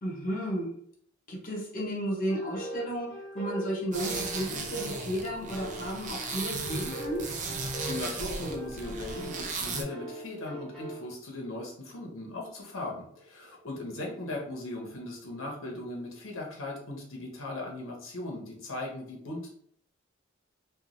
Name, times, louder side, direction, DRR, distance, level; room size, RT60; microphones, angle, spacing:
voice 1, 0.0-0.7 1.3-7.3, equal, 45° left, -2 dB, 0.7 m, -33 dB
sound 1, 2.3-11.0, equal, 5° left, 0.9 m, -42 dB
sound 2, 3.9-9.8, right 4 dB, 40° right, 0.4 m, -36 dB
voice 2, 7.9-19.5, left 2 dB, 85° left, -1 dB, 0.8 m, -38 dB
3.0 x 2.3 x 2.5 m, 0.64 s
head